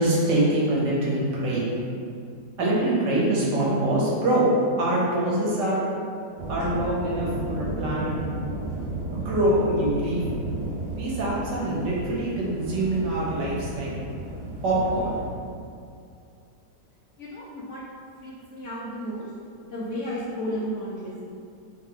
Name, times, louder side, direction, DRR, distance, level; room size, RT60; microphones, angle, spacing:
voice 1, 0.0-1.6 2.6-4.5 4.8-5.8 6.5-8.4 9.1-10.2 10.9-14.0 14.6-15.2, right 1 dB, 85° right, -5 dB, 1.6 m, -24 dB
sound 1, 6.4-15.3, right 1 dB, 45° right, 0.7 m, -33 dB
voice 2, 17.2-17.8 18.2-19.3 19.6-21.3, equal, 65° left, -6 dB, 0.8 m, -33 dB
3.6 x 3.5 x 3.5 m, 2.4 s
omnidirectional pair, 1.8 m